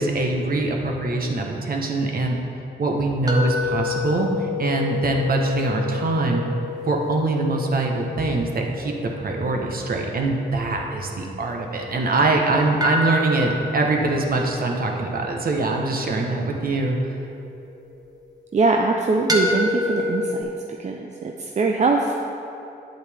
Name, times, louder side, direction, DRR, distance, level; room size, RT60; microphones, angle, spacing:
voice 1, 0.0-2.4 2.8-6.4 6.9-17.1, right 2 dB, 60° right, 1 dB, 1.1 m, -23 dB
sound 1, 3.3-12.2 12.8-17.9 19.3-20.4, left 3 dB, 20° right, 1.1 m, -30 dB
voice 2, 18.5-20.5 20.8-22.1, right 3 dB, 45° right, 2 dB, 0.5 m, -22 dB
9.2 x 7.8 x 3.5 m, 2.8 s
cardioid pair, 80°, 17 cm